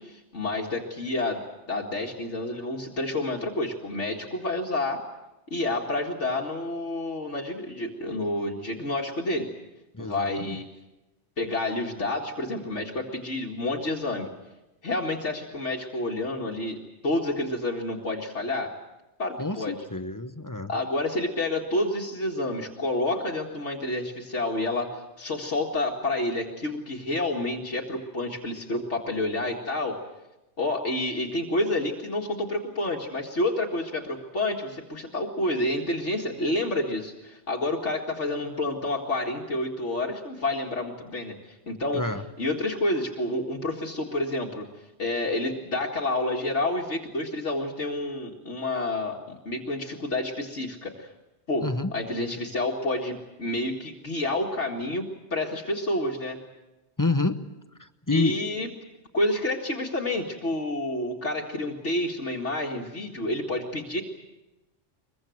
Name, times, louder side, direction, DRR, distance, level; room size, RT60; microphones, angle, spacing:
voice 1, 0.0-1.4 1.7-5.0 5.5-9.5 10.0-10.6 11.4-14.3 14.8-18.7 19.2-19.8 20.7-30.0 30.6-42.1 42.4-51.1 51.5-56.4 58.1-58.7 59.1-64.0, left 2 dB, 70° left, -1 dB, 2.4 m, -29 dB
voice 2, 9.9-10.5 19.4-20.7 41.9-42.3 51.6-51.9 57.0-57.5 57.8-58.4, left 2 dB, 15° left, 10 dB, 0.9 m, -28 dB
23.0 x 23.0 x 7.8 m, 1.0 s
omnidirectional pair, 1.3 m